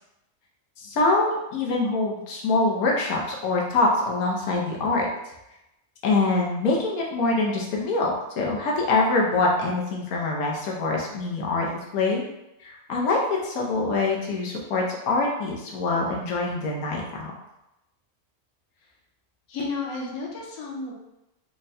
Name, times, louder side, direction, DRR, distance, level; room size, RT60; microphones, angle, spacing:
voice 1, 0.8-5.1 6.0-11.7 11.9-12.2 12.6-17.3, left 3 dB, 90° left, -2 dB, 1.2 m, -24 dB
voice 2, 19.5-20.9, left 3 dB, 65° left, -3 dB, 1.1 m, -32 dB
3.6 x 2.2 x 4.0 m, 0.91 s
omnidirectional pair, 1.5 m